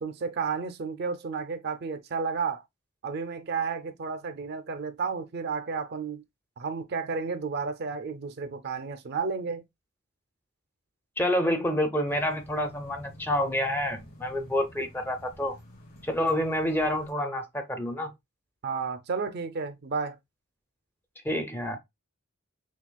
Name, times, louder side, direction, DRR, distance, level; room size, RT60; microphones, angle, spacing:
voice 1, 0.0-2.6 3.0-6.2 6.6-9.6 18.6-20.2, right 5 dB, 50° right, 0.4 m, -32 dB
voice 2, 11.2-15.6 16.0-18.1 21.2-21.8, left 1 dB, 10° left, 0.5 m, -28 dB
sound 1, 12.1-17.1, equal, 45° left, 2.1 m, -50 dB
5.9 x 2.3 x 2.2 m
head